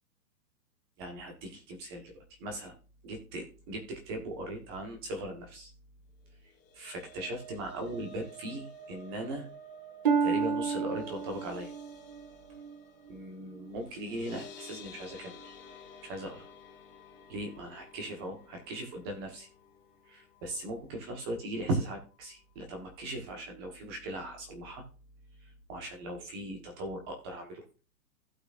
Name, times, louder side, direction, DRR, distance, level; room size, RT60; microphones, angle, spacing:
voice 1, 1.0-2.1 2.4-2.7 3.0-5.7 6.7-9.5 10.2-11.7 13.1-15.5 16.0-16.5 17.3-19.5 20.1-24.8 25.7-27.6, right 1 dB, 15° right, 3 dB, 1.2 m, -38 dB
sound 1, 6.5-20.7 21.0-21.3 21.6-21.7, equal, 15° left, 1.9 m, -52 dB
Harp, 10.0-13.8 14.3-14.7 15.4-15.5, right 5 dB, 30° right, 0.6 m, -32 dB
15.5 x 6.1 x 2.5 m, 0.35 s
hypercardioid pair, 170°, 49 cm